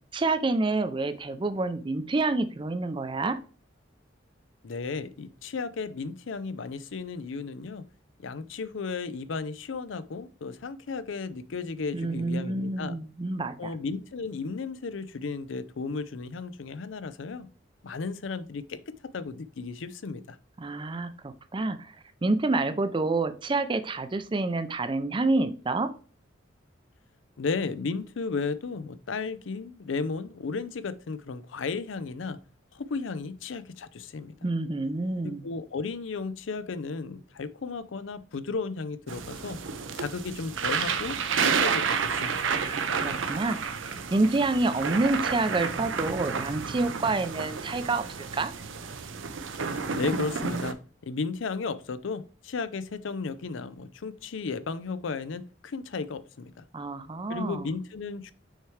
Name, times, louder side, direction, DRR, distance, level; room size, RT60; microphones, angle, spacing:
voice 1, 0.1-3.4 11.9-13.7 20.6-22.0 22.2-25.9 34.4-35.4 42.5-48.1 48.3-48.5 56.7-57.7, right 2 dB, 25° right, 11 dB, 0.5 m, -28 dB
voice 2, 4.6-7.8 8.2-13.0 13.6-17.5 17.8-20.4 27.4-32.4 32.7-34.4 35.2-39.6 40.0-42.4 49.9-50.8 51.0-56.5 57.3-58.3, left 4 dB, 75° left, 14 dB, 0.5 m, -34 dB
sound 1, 39.1-50.7, right 6 dB, 80° right, 0.7 m, -30 dB
6.5 x 4.5 x 3.2 m, 0.38 s
head